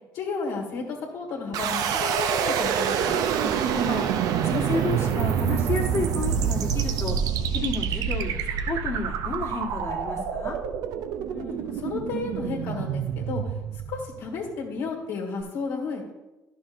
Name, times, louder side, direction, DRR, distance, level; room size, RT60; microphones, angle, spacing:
voice 1, 0.1-3.2 11.3-13.5 13.9-16.1, left 4 dB, 80° left, -1 dB, 1.9 m, -32 dB
sound 1, 1.5-14.5, right 8 dB, 70° right, 0.5 m, -27 dB
voice 2, 3.4-4.1 4.4-7.2 7.5-10.6, left 3 dB, 45° left, -4 dB, 1.5 m, -31 dB
11.0 x 6.3 x 2.6 m, 1.0 s
supercardioid pair, 75°, 6 cm